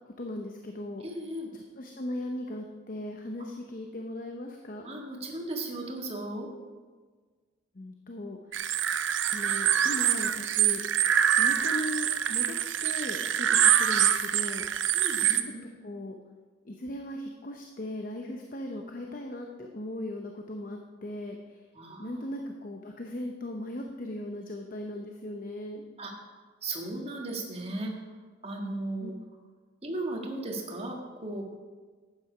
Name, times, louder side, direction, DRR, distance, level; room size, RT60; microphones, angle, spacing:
voice 1, 0.2-1.0 1.8-4.9 7.8-8.4 9.3-10.8 11.3-12.5 12.8-14.6 15.8-16.1 16.7-21.4 22.0-25.8 29.0-29.1, left 1 dB, 45° left, 3 dB, 0.8 m, -38 dB
voice 2, 1.0-1.5 3.4-3.5 4.8-6.5 13.4-13.6 14.7-15.6 21.7-22.3 26.0-26.1 26.6-27.9 28.4-29.1 29.8-31.4, right 2 dB, 30° right, 1 dB, 1.7 m, -36 dB
sound 1, 8.5-15.4, right 9 dB, 80° right, 0.7 m, -25 dB
11.5 x 8.9 x 5.0 m, 1.5 s
head